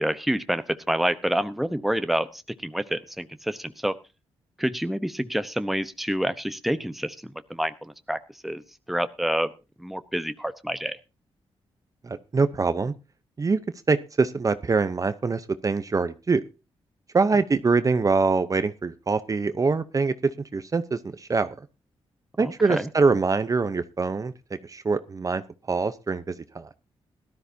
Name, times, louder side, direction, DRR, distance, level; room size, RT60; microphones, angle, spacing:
voice 1, 0.0-3.9 4.6-8.6 8.9-9.5 9.8-11.0 22.4-22.9, equal, ahead, 11 dB, 0.9 m, -28 dB
voice 2, 12.0-12.9 13.4-13.6 13.9-16.4 17.1-21.5 22.4-24.3 24.6-25.4 25.7-26.7, right 4 dB, 35° right, 12 dB, 0.8 m, -24 dB
17.5 x 13.0 x 2.7 m, 0.30 s
cardioid pair, 80°, 10 cm